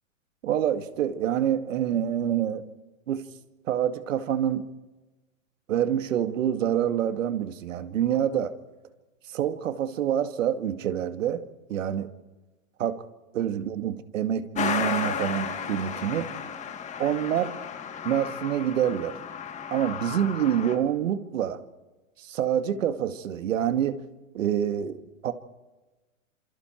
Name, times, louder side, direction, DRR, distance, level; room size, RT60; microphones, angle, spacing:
voice 1, 0.4-2.6 3.1-3.2 3.7-4.6 5.7-8.5 9.3-11.4 11.7-12.1 12.8-13.0 13.3-16.3 17.0-17.5 18.0-19.1 19.7-21.6 22.2-24.0 24.3-25.3, right 10 dB, 70° right, 10 dB, 2.1 m, -26 dB
Truck, 14.5-20.8, left 6 dB, 15° left, 2.0 m, -33 dB
27.5 x 26.5 x 4.5 m, 1.1 s
hypercardioid pair, 140°, 40 cm